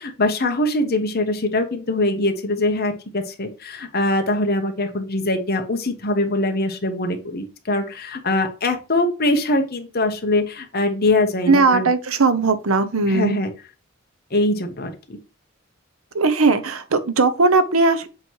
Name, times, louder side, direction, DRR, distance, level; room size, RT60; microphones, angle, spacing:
voice 1, 0.0-11.9 13.1-13.5 14.3-15.2, left 2 dB, 45° left, 1.2 m, -22 dB
voice 2, 11.5-13.4 16.1-18.1, right 3 dB, 75° right, 0.8 m, -18 dB
7.4 x 3.1 x 4.6 m
head